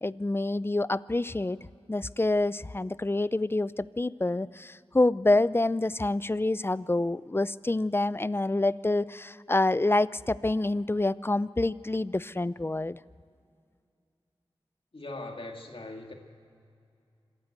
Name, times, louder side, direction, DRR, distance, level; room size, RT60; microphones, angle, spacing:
voice 1, 0.0-1.6 1.9-13.0, left 2 dB, 20° left, 18 dB, 0.4 m, -27 dB
voice 2, 14.9-16.1, left 2 dB, 60° left, 3 dB, 2.3 m, -40 dB
26.5 x 13.0 x 8.0 m, 2.4 s
wide cardioid pair, 50°, 10 cm